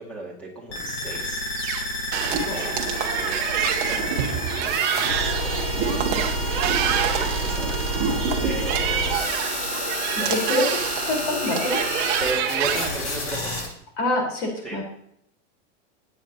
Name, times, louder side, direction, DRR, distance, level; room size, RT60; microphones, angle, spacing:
voice 1, 0.0-1.4 2.4-4.2 5.1-7.7 8.4-9.3 10.2-10.5 12.2-13.6 14.6-14.8, right 2 dB, 5° left, -3 dB, 2.2 m, -36 dB
sound 1, 0.7-13.7, left 1 dB, 70° left, 5.0 m, -29 dB
sound 2, 1.5-1.9 2.1-2.4 3.3-4.7 6.0-8.0 9.0-9.6 10.5-11.2 12.0-13.1, right 10 dB, 60° right, 1.3 m, -30 dB
sound 3, 2.1-12.9, right 7 dB, 30° right, 1.1 m, -27 dB
voice 2, 10.3-10.6 11.1-11.8 14.0-14.8, left 2 dB, 50° left, 0 dB, 4.5 m, -25 dB
18.0 x 8.7 x 2.9 m, 0.73 s
supercardioid pair, 175°, 36 cm